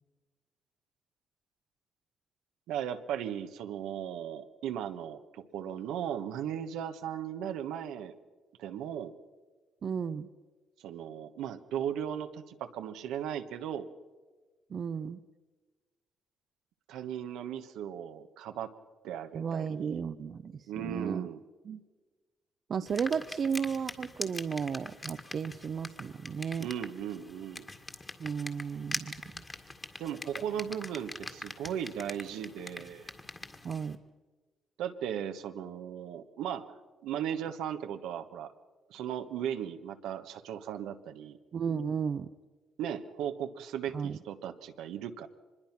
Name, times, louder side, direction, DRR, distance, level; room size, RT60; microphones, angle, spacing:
voice 1, 2.7-8.1 8.6-9.1 10.8-13.9 16.9-18.7 19.0-20.0 20.7-21.4 26.6-27.7 30.0-33.1 34.8-36.7 37.0-38.5 38.9-41.4 42.8-45.3, right 9 dB, 90° right, 7 dB, 1.3 m, -37 dB
voice 2, 9.8-10.3 14.7-15.2 19.3-21.3 21.6-21.8 22.7-26.7 28.2-29.4 33.6-34.0 41.5-42.3 43.9-44.2, right 6 dB, 50° right, 11 dB, 0.7 m, -34 dB
sound 1, 22.9-33.9, left 2 dB, 20° left, 2.0 m, -43 dB
24.5 x 21.0 x 6.0 m, 1.3 s
cardioid pair, 90°, 0 cm